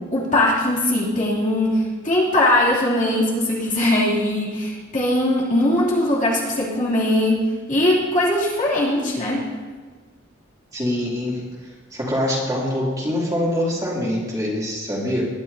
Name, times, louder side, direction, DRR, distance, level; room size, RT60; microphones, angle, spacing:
voice 1, 0.1-7.4 7.7-9.4, left 1 dB, 40° left, -6 dB, 2.7 m, -20 dB
voice 2, 10.7-11.4 11.9-15.3, left 1 dB, 20° right, -5 dB, 2.8 m, -24 dB
20.0 x 11.0 x 2.7 m, 1.5 s
head